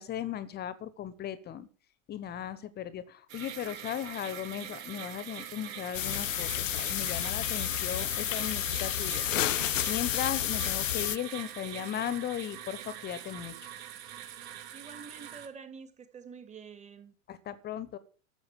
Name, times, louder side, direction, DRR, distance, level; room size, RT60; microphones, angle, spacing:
voice 1, 0.0-1.7 2.1-9.2 9.9-13.5 17.3-18.0, left 10 dB, 25° left, 1.1 m, -37 dB
sound 1, 3.3-15.5, right 10 dB, 50° right, 2.7 m, -43 dB
sound 2, 5.9-11.2, left 13 dB, 65° left, 0.6 m, -31 dB
voice 2, 14.7-17.1, right 5 dB, 15° right, 2.1 m, -47 dB
14.0 x 7.9 x 7.5 m
figure-of-eight pair, 90°, 40 cm